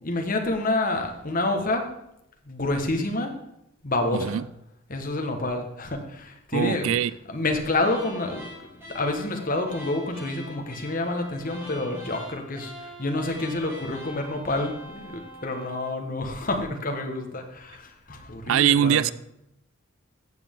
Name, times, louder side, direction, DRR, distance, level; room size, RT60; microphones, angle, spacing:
voice 1, 0.0-1.9 2.5-3.3 3.8-4.4 4.9-6.9 7.3-8.4 8.9-19.1, left 2 dB, 40° left, 4 dB, 1.4 m, -28 dB
voice 2, 4.1-4.4 6.5-7.1 18.5-19.1, right 9 dB, 65° right, 18 dB, 0.3 m, -22 dB
sound 1, 7.8-16.0, left 1 dB, 10° right, 4.0 m, -43 dB
14.0 x 7.6 x 3.7 m, 0.81 s
head